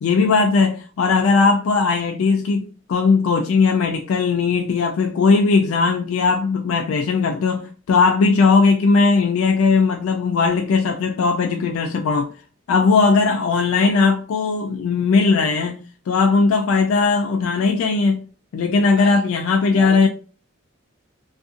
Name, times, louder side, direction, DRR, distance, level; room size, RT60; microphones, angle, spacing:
voice 1, 0.0-12.3 12.7-15.8 16.1-18.2 18.5-20.1, left 4 dB, 80° left, 0.3 m, -18 dB
voice 2, 19.7-20.1, left 3 dB, 50° left, 0.8 m, -34 dB
2.5 x 2.4 x 2.4 m
head